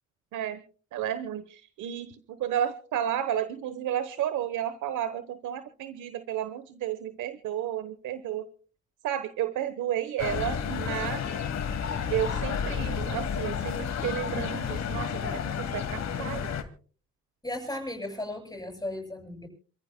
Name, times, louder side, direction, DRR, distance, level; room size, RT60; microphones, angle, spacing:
voice 1, 0.3-0.6 0.9-8.5 9.0-11.3 12.1-16.5, right 10 dB, 80° right, 12 dB, 1.1 m, -32 dB
sound 1, 10.2-16.6, left 7 dB, 60° left, 2.2 m, -31 dB
voice 2, 17.4-19.5, left 1 dB, 10° left, 2 dB, 7.6 m, -35 dB
28.5 x 14.5 x 2.2 m, 0.41 s
cardioid pair, 90°, 30 cm